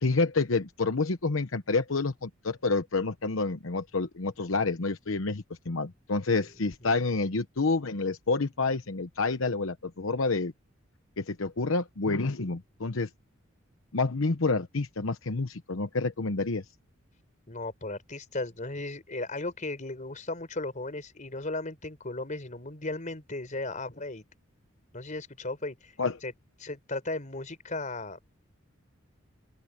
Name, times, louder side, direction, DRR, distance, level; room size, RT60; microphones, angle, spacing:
voice 1, 0.0-10.5 11.2-13.1 13.9-16.6 26.0-26.2, left 3 dB, 80° left, 1.0 m, -28 dB
voice 2, 17.5-24.2 24.9-25.9 26.2-26.3 26.6-28.2, left 2 dB, 40° left, 4.2 m, -36 dB
open air
head